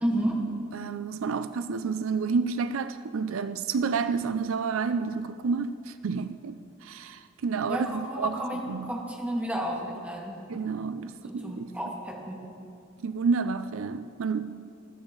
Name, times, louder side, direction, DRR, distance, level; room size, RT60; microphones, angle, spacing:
voice 1, 0.0-0.4 7.7-10.4 11.3-12.4, right 1 dB, 5° right, 2.1 m, -31 dB
voice 2, 0.7-8.4 8.7-8.9 10.5-11.7 13.0-14.6, right 5 dB, 75° right, 0.4 m, -30 dB
21.0 x 13.5 x 3.9 m
head